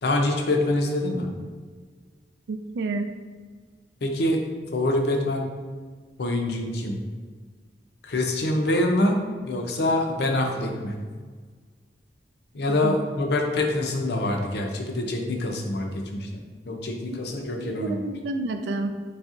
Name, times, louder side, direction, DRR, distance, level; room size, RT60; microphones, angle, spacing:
voice 1, 0.0-1.3 4.0-4.4 4.7-5.5 6.2-7.0 8.0-9.2 9.5-11.0 12.5-18.0, left 1 dB, 60° left, 2 dB, 0.5 m, -25 dB
voice 2, 2.5-3.1 12.8-13.0 17.6-18.9, right 3 dB, 70° right, 6 dB, 0.3 m, -29 dB
4.1 x 3.4 x 2.4 m, 1.5 s
head